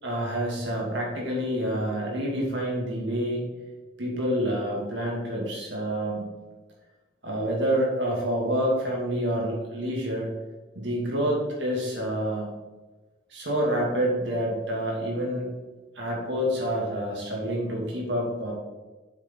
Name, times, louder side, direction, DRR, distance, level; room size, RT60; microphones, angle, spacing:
voice 1, 0.0-3.5 4.0-6.3 7.2-10.3 10.7-12.5 13.3-15.5 15.9-18.5, equal, 60° right, -2 dB, 2.6 m, -28 dB
8.1 x 6.2 x 4.0 m, 1.2 s
head